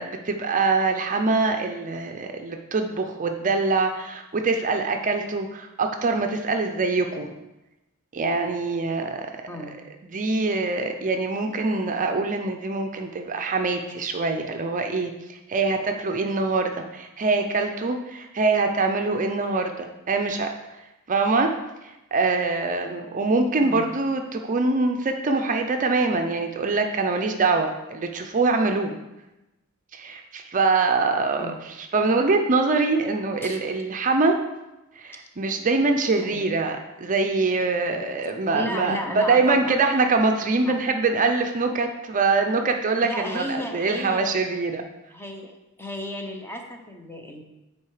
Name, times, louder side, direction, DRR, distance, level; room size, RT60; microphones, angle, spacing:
voice 1, 0.0-7.3 8.1-9.3 10.1-20.5 21.1-21.5 21.8-29.0 29.9-34.4 35.0-44.8, right 3 dB, 35° right, 5 dB, 0.5 m, -24 dB
voice 2, 9.5-9.8 23.6-24.0 31.4-31.6 33.4-33.6 35.2-35.3 36.2-36.5 38.5-39.8 40.5-40.8 43.0-44.3 45.1-47.4, left 1 dB, 10° left, 3 dB, 0.9 m, -34 dB
8.7 x 4.6 x 4.8 m, 0.98 s
head